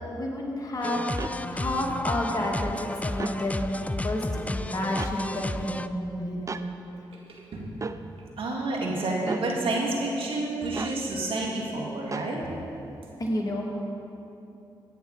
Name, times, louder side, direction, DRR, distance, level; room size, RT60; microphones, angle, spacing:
voice 1, 0.1-6.6 13.2-13.8, left 1 dB, 40° left, -1 dB, 2.3 m, -30 dB
sound 1, 0.8-5.9, left 1 dB, 15° left, 0.4 m, -33 dB
sound 2, 1.2-1.4 3.1-3.4 5.0-5.2 6.5-6.7 7.8-8.0 9.2-9.5 10.7-11.0 12.1-12.3, right 3 dB, 35° right, 0.5 m, -34 dB
voice 2, 8.4-12.4, right 2 dB, 70° right, -2 dB, 2.2 m, -29 dB
14.0 x 9.3 x 4.2 m, 2.8 s
supercardioid pair, 50°, 10 cm